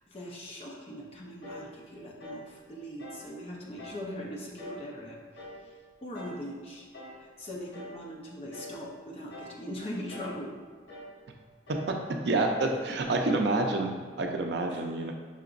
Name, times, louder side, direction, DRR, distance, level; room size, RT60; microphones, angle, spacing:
voice 1, 0.1-5.4 6.0-6.8 7.2-10.6 14.7-15.1, equal, 30° left, -3 dB, 0.6 m, -41 dB
sound 1, 1.4-1.7 2.2-2.5 3.0-3.3 3.8-4.1 4.6-4.9 5.3-5.7 6.1-6.4 6.9-7.2 7.7-8.0 8.5-8.8 9.3-9.6 10.1-10.4 10.9-11.2 11.7-12.0 12.5-12.8 13.2-13.6, left 1 dB, 80° left, 0.8 m, -45 dB
voice 2, 12.3-13.9 14.2-15.1, right 2 dB, 60° right, 3 dB, 0.4 m, -27 dB
5.6 x 2.9 x 2.5 m, 1.5 s
head